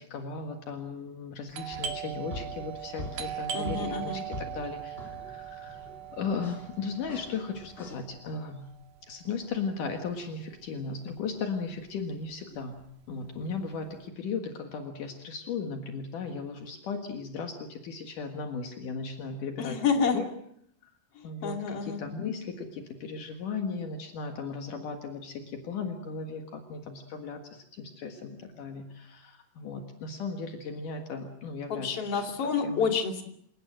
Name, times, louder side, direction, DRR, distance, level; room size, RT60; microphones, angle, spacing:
voice 1, 0.0-5.8 6.1-8.7 9.1-12.8 13.1-19.8 20.1-20.3 20.8-20.9 21.2-32.9, left 5 dB, 70° left, 5 dB, 3.2 m, -36 dB
Doorbell, 1.5-10.9 11.1-11.2 11.9-12.2 12.5-13.9, right 9 dB, 70° right, 3.5 m, -40 dB
sound 1, 1.7-8.1, left 2 dB, 15° left, 3.0 m, -44 dB
voice 2, 3.5-4.3 19.6-20.2 21.2-22.0 31.7-33.2, left 5 dB, 45° left, 4 dB, 3.5 m, -29 dB
28.0 x 18.5 x 7.7 m, 0.71 s
omnidirectional pair, 4.0 m